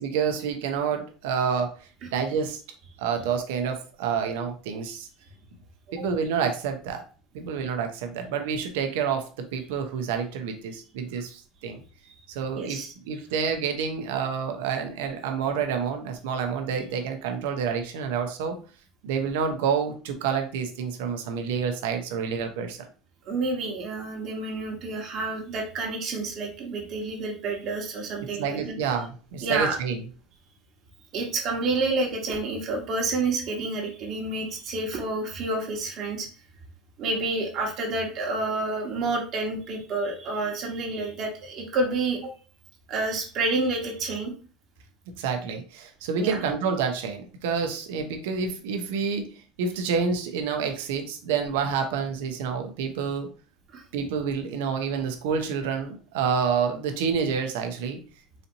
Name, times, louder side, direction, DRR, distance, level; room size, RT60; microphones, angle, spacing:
voice 1, 0.0-1.8 2.1-2.6 3.0-5.1 5.9-7.0 7.3-11.8 12.3-18.6 19.0-22.8 28.4-30.0 45.2-49.3 49.6-53.3 53.9-58.0, right 6 dB, 90° right, 5 dB, 0.7 m, -28 dB
voice 2, 12.5-12.9 23.2-28.8 29.4-29.7 31.1-36.3 37.0-42.3 42.9-44.3 46.2-46.4 53.7-53.8, right 3 dB, 50° right, 0 dB, 1.2 m, -29 dB
4.1 x 2.8 x 2.6 m, 0.37 s
supercardioid pair, 130°, 0 cm